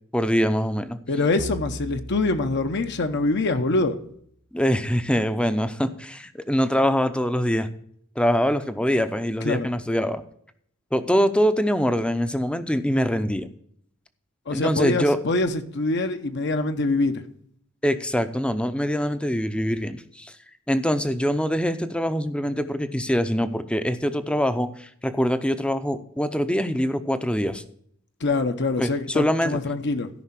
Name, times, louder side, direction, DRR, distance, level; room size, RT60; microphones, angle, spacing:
voice 1, 0.1-1.0 4.5-7.7 8.2-10.2 10.9-13.5 14.5-15.2 17.8-20.3 20.7-27.6 28.8-29.6, equal, 5° left, 10 dB, 0.6 m, -24 dB
voice 2, 1.1-4.0 9.4-9.7 14.5-17.2 28.2-30.1, left 3 dB, 55° left, 7 dB, 0.8 m, -24 dB
sound 1, 1.4-4.0, right 1 dB, 25° right, 0.8 m, -39 dB
13.5 x 5.6 x 5.8 m, 0.65 s
head